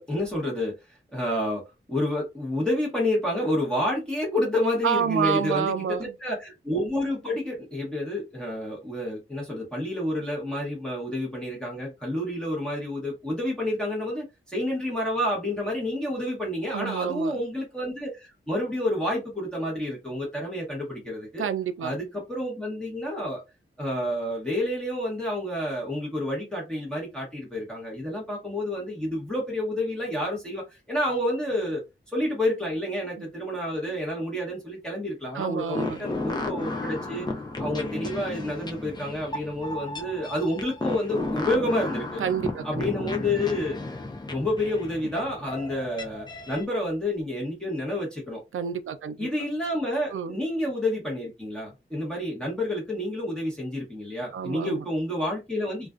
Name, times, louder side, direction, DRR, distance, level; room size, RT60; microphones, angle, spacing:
voice 1, 0.0-1.6 1.9-21.5 21.8-23.4 23.8-31.8 32.1-37.3 37.6-42.2 42.6-43.8 44.3-48.4 49.2-55.9, left 1 dB, 5° left, 1.0 m, -29 dB
voice 2, 4.8-6.1 16.7-17.4 21.4-22.0 33.2-33.3 35.3-36.1 42.2-42.9 48.5-49.3 50.1-50.4 54.3-54.9, right 7 dB, 80° right, 0.4 m, -29 dB
sound 1, 35.7-46.6, left 2 dB, 20° left, 0.4 m, -33 dB
2.4 x 2.2 x 2.4 m
wide cardioid pair, 110°, 21 cm